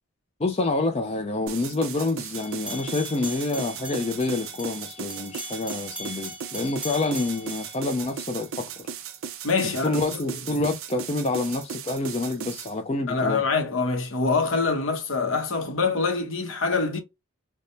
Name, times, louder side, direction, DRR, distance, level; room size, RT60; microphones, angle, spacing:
voice 1, 0.4-8.9 9.8-13.4, left 2 dB, 30° left, 0.4 m, -27 dB
sound 1, 1.5-12.7, right 7 dB, 70° right, 0.5 m, -37 dB
sound 2, 2.3-8.6, left 1 dB, 5° right, 0.7 m, -40 dB
voice 2, 9.4-10.4 13.1-17.0, left 4 dB, 70° left, 0.9 m, -25 dB
3.4 x 2.1 x 2.6 m
head